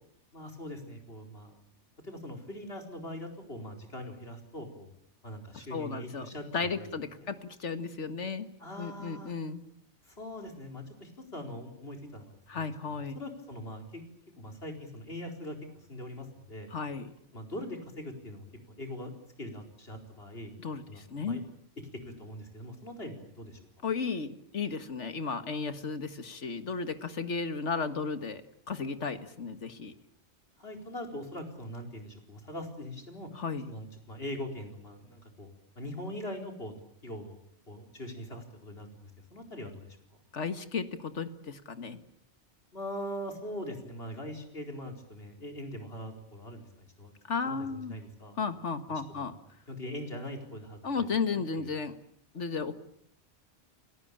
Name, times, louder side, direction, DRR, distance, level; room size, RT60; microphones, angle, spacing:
voice 1, 0.3-1.6 2.0-4.9 5.2-6.9 7.2-7.3 8.6-9.3 10.0-14.0 14.4-15.6 15.9-16.7 17.3-19.1 19.4-20.5 20.9-21.4 21.8-23.6 30.6-33.3 33.7-35.5 35.8-36.7 37.0-37.4 37.7-40.0 42.7-47.1 47.4-48.4 49.1-49.4 49.7-51.1 51.5-51.7, left 1 dB, 55° left, 4 dB, 4.7 m, -42 dB
voice 2, 5.7-6.3 6.5-8.5 8.8-9.6 12.5-13.2 16.7-17.1 20.6-21.4 23.8-29.9 33.4-33.7 40.3-42.0 47.3-47.9 48.4-49.4 50.8-51.9 52.3-52.7, left 5 dB, 75° left, 10 dB, 2.0 m, -34 dB
29.0 x 18.5 x 8.8 m, 0.71 s
omnidirectional pair, 1.2 m